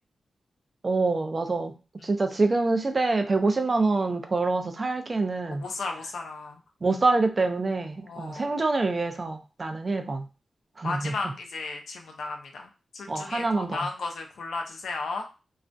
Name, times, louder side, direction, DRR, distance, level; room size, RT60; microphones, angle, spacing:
voice 1, 0.8-1.7 2.0-5.6 6.8-10.3 10.8-11.1 13.1-13.9, right 3 dB, 45° right, 6 dB, 0.4 m, -26 dB
voice 2, 5.5-6.6 8.0-8.5 10.8-15.4, left 3 dB, 85° left, 2 dB, 0.5 m, -35 dB
2.4 x 2.1 x 2.6 m, 0.31 s
cardioid pair, 55°, 0 cm